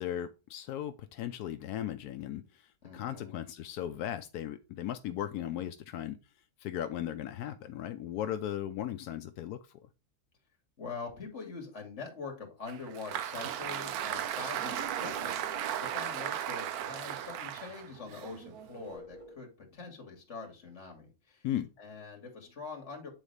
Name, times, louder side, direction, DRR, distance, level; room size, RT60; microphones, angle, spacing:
voice 1, 0.0-6.2 6.6-9.9 21.4-21.7, left 11 dB, 85° left, 1.1 m, -37 dB
voice 2, 2.8-3.4 10.8-15.4 15.8-21.5 21.8-23.1, left 4 dB, 50° left, 2.3 m, -44 dB
Applause, 12.7-19.0, right 10 dB, 75° right, 1.1 m, -36 dB
sound 1, 13.6-16.8 18.9-19.4, equal, 20° right, 1.4 m, -51 dB
8.8 x 4.1 x 3.3 m
omnidirectional pair, 1.6 m